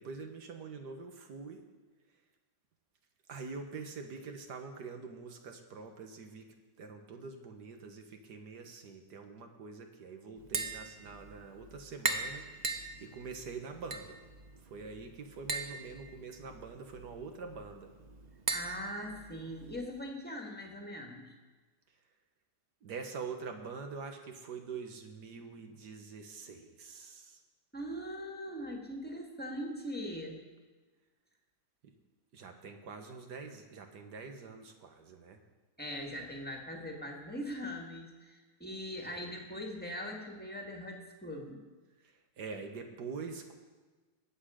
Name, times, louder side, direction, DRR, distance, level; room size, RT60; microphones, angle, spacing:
voice 1, 0.0-1.6 3.3-6.5 6.8-14.2 14.6-17.9 22.8-27.4 31.8-31.9 32.3-35.4 39.0-39.3 42.0-43.5, right 4 dB, 70° right, 5 dB, 1.7 m, -45 dB
Tap, 10.4-19.9, right 3 dB, 40° right, 0.6 m, -41 dB
voice 2, 18.5-21.3 27.7-30.4 35.8-41.6, equal, 5° left, 1 dB, 1.6 m, -41 dB
19.5 x 8.1 x 5.0 m, 1.3 s
omnidirectional pair, 1.9 m